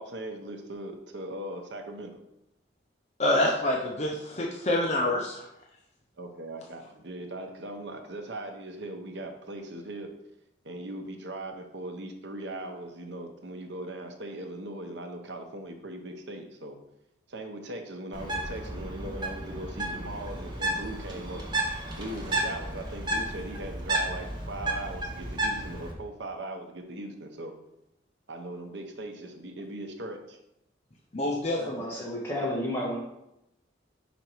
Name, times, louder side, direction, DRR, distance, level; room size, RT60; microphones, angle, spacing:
voice 1, 0.0-2.2 6.2-10.1 10.6-16.8 17.3-21.4 22.0-27.5 28.3-30.4, right 1 dB, 65° right, 4 dB, 0.9 m, -39 dB
voice 2, 3.2-5.4 31.1-31.8, left 1 dB, 35° left, -1 dB, 0.6 m, -27 dB
Bird, 18.1-25.9, right 1 dB, 25° right, 1.1 m, -32 dB
voice 3, 31.6-33.0, left 1 dB, 15° left, -4 dB, 1.4 m, -32 dB
5.3 x 5.1 x 4.5 m, 0.85 s
head